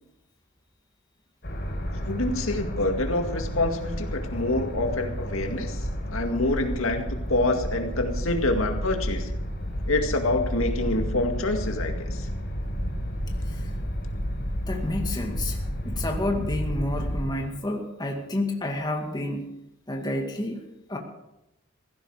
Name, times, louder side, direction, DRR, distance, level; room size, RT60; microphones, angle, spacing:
sound 1, 1.4-17.3, equal, 50° left, 4.5 m, -31 dB
voice 1, 2.0-9.3 9.9-12.3, left 2 dB, 75° left, 4 dB, 2.1 m, -27 dB
voice 2, 13.4-13.7 14.7-19.5 19.9-20.6 20.9-21.0, left 1 dB, 20° left, 1 dB, 2.0 m, -30 dB
16.5 x 15.0 x 4.9 m, 0.87 s
head